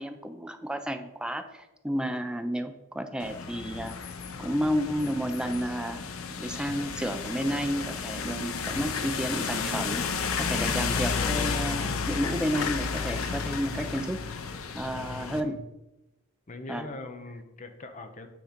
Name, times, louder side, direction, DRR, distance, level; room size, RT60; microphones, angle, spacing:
voice 1, 0.0-4.0 4.4-6.0 6.4-14.2 14.7-15.6 16.7-16.9, equal, 5° right, 7 dB, 0.4 m, -31 dB
sound 1, 3.2-15.4, left 5 dB, 85° left, 0.6 m, -32 dB
voice 2, 15.1-15.6 16.5-18.3, left 2 dB, 35° left, 7 dB, 0.7 m, -42 dB
8.6 x 3.9 x 5.1 m, 0.95 s
head